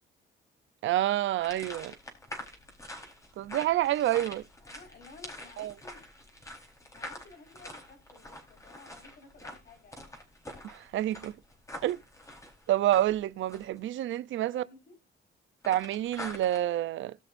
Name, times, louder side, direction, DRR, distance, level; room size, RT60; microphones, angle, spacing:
voice 1, 0.8-1.9 3.4-4.4 5.6-5.7 10.6-11.3 11.8-12.0 12.7-14.6 15.7-17.2, right 13 dB, 75° right, 0.6 m, -28 dB
sound 1, 1.4-13.8 15.6-16.6, left 1 dB, 15° left, 4.1 m, -45 dB
voice 2, 4.6-6.0 6.9-10.1 14.4-14.9, left 3 dB, 55° left, 5.3 m, -54 dB
19.0 x 6.4 x 2.6 m
cardioid pair, 90°, 20 cm